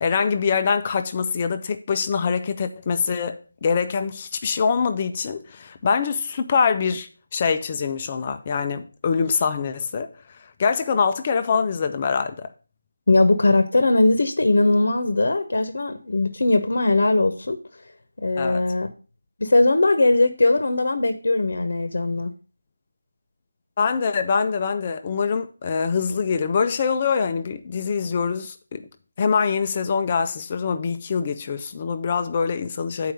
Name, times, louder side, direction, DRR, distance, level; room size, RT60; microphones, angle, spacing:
voice 1, 0.0-12.5 18.4-18.6 23.8-28.9 29.2-33.1, left 5 dB, 30° left, 0.5 m, -24 dB
voice 2, 13.1-17.6 18.2-18.9 19.4-22.3, left 2 dB, 65° left, 0.9 m, -20 dB
7.6 x 4.7 x 6.5 m
figure-of-eight pair, 165°, 0 cm